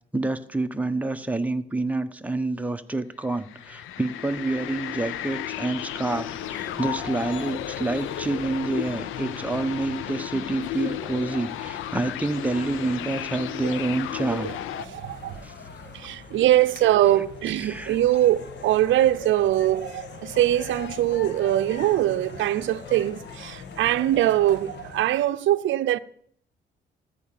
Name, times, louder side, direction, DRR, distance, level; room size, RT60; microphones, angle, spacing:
voice 1, 0.1-14.5 15.4-15.5 17.5-18.0, right 2 dB, 5° right, 1.0 m, -28 dB
sound 1, 3.2-14.9, left 12 dB, 85° left, 0.6 m, -34 dB
sound 2, 6.1-25.1, left 5 dB, 60° left, 1.7 m, -42 dB
voice 2, 14.8-15.5 15.9-26.0, right 13 dB, 75° right, 0.6 m, -22 dB
14.5 x 5.1 x 9.1 m
cardioid pair, 90°, 20 cm